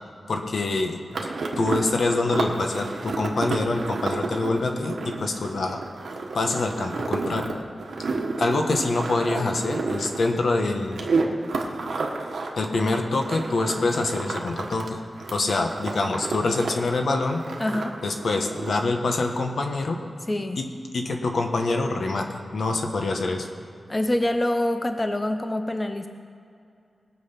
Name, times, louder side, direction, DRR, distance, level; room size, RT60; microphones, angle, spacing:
voice 1, 0.3-1.3 1.6-5.8 6.3-7.5 8.4-11.1 12.6-15.0 15.3-17.4 18.0-20.0 20.6-23.5, left 2 dB, 75° left, 4 dB, 1.3 m, -25 dB
sound 1, 1.1-14.9 15.2-16.7 17.0-18.9, right 3 dB, 85° right, 1.4 m, -31 dB
voice 2, 17.6-18.0 20.3-20.6 23.9-26.1, left 1 dB, 20° left, 7 dB, 0.6 m, -25 dB
20.0 x 7.6 x 5.9 m, 2.5 s
wide cardioid pair, 125°, 0 cm